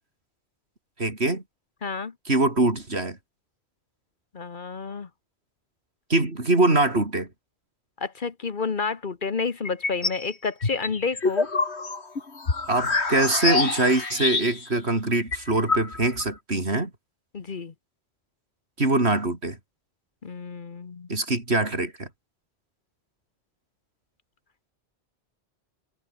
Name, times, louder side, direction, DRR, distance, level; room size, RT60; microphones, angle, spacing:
voice 1, 1.0-1.4 2.3-3.2 6.1-7.3 12.7-16.9 18.8-19.6 21.1-22.1, right 2 dB, 75° right, 4.5 m, -23 dB
voice 2, 1.8-2.1 4.3-5.1 8.0-11.5 17.3-17.7 20.2-21.1, left 4 dB, 50° left, 1.3 m, -30 dB
sound 1, 9.7-10.2 10.6-14.8 15.1-15.2 15.3-16.3, left 3 dB, 90° left, 2.9 m, -26 dB
omnidirectional pair, 1.1 m